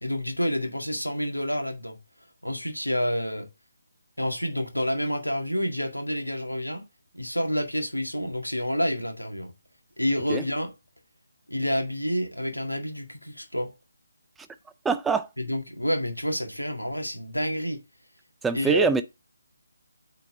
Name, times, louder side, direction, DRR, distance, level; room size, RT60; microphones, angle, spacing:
voice 1, 0.0-2.0 2.4-3.5 4.2-6.8 7.1-9.5 10.0-10.7 11.5-13.7 15.4-17.8 18.5-18.9, equal, 85° left, 1.8 m, -28 dB
voice 2, 14.8-15.3 18.4-19.0, right 5 dB, 5° right, 0.3 m, -23 dB
8.6 x 4.1 x 3.5 m
figure-of-eight pair, 150°, 0 cm